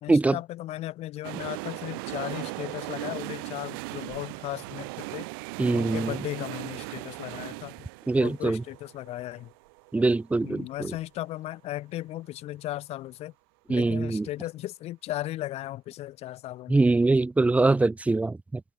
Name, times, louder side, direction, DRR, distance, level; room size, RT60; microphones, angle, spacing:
voice 1, 0.0-5.3 5.7-7.9 8.2-9.5 10.4-13.3 13.7-16.8, left 15 dB, 65° left, 2.5 m, -36 dB
sound 1, 1.2-11.1 11.3-11.4, right 28 dB, 90° right, 1.7 m, -38 dB
voice 2, 5.6-6.1 8.1-8.6 9.9-10.9 13.7-14.3 16.7-18.6, right 3 dB, 10° right, 0.4 m, -23 dB
open air
supercardioid pair, 90°, 12 cm